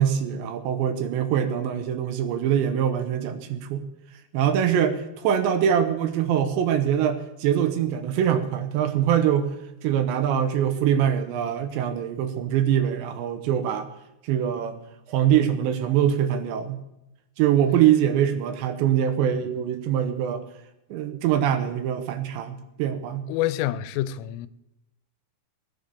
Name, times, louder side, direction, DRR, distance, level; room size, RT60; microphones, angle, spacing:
voice 1, 0.0-3.8 4.3-9.5 9.8-13.9 14.2-14.8 15.1-16.8 17.4-20.4 20.9-23.3, right 9 dB, 75° right, 3.0 m, -23 dB
voice 2, 23.3-24.5, left 13 dB, 85° left, 3.2 m, -27 dB
19.0 x 10.5 x 6.8 m
omnidirectional pair, 5.7 m